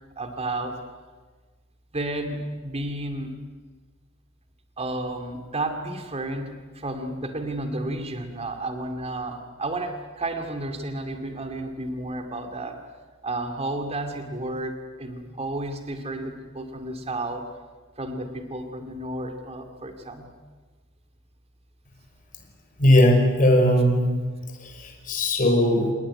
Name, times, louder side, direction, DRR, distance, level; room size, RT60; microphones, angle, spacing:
voice 1, 0.2-0.8 1.9-3.3 4.8-12.8 13.2-17.5 18.0-20.3, right 2 dB, 30° right, 7 dB, 2.4 m, -32 dB
voice 2, 22.8-24.1 24.6-25.9, left 1 dB, 40° left, 2 dB, 5.7 m, -19 dB
27.5 x 19.5 x 9.9 m, 1.4 s
head